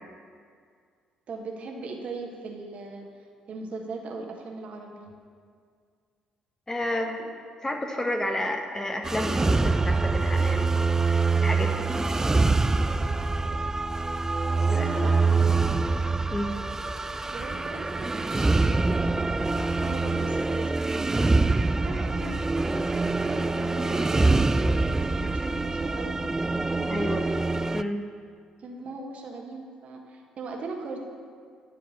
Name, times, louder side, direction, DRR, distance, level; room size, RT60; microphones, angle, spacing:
voice 1, 1.3-3.1 3.5-5.1 12.7-13.1 14.7-15.3 17.2-19.2 19.7-21.3 21.7-22.9 23.2-26.3 26.7-27.0 28.6-31.0, right 3 dB, 45° right, 1 dB, 1.4 m, -39 dB
voice 2, 6.7-7.3 7.6-11.9 12.8-12.9 14.7-15.1 16.3-16.6 26.9-27.2 27.7-28.0, left 1 dB, 20° left, 3 dB, 1.2 m, -31 dB
sound 1, 9.0-27.8, right 3 dB, 15° right, 0.4 m, -25 dB
12.0 x 4.7 x 8.2 m, 2.1 s
figure-of-eight pair, 45°, 3 cm